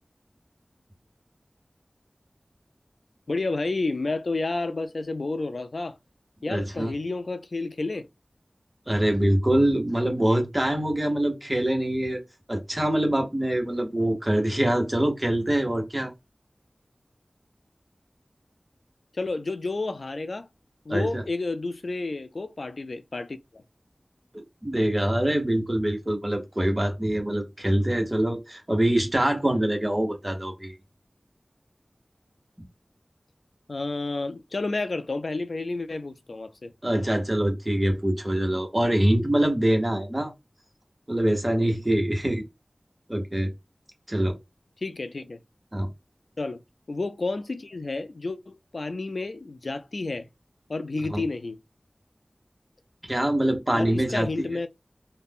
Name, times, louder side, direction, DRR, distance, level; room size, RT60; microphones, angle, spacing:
voice 1, 3.3-6.0 6.4-8.0 19.1-20.5 20.9-23.6 33.7-36.7 44.8-45.4 46.4-46.6 46.9-50.3 50.7-51.6 53.7-54.7, left 3 dB, 80° left, 0.3 m, -30 dB
voice 2, 6.5-6.9 8.9-12.2 12.5-16.1 20.9-21.2 24.3-30.7 36.8-40.3 41.1-42.4 43.1-43.5 44.1-44.4 45.7-45.9 51.1-51.2 53.1-54.5, right 1 dB, 25° right, 0.9 m, -24 dB
2.4 x 2.1 x 3.4 m
wide cardioid pair, 55°, 0 cm